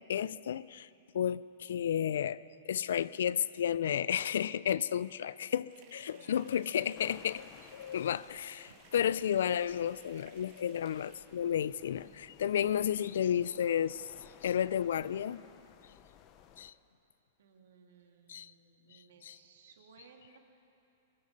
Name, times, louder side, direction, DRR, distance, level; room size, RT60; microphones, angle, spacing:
voice 1, 0.1-0.9 1.1-2.4 2.7-14.1 14.4-15.4 16.6-16.7 18.3-18.5 18.9-19.4, left 9 dB, 75° left, 18 dB, 0.4 m, -32 dB
sound 1, 5.7-11.2, right 5 dB, 40° right, 2.0 m, -61 dB
voice 2, 6.1-6.7 17.4-20.4, right 5 dB, 75° right, 3 dB, 2.1 m, -60 dB
sound 2, 6.9-16.7, left 9 dB, 30° left, 0.6 m, -58 dB
22.0 x 12.0 x 5.4 m, 2.7 s
hypercardioid pair, 165°, 0 cm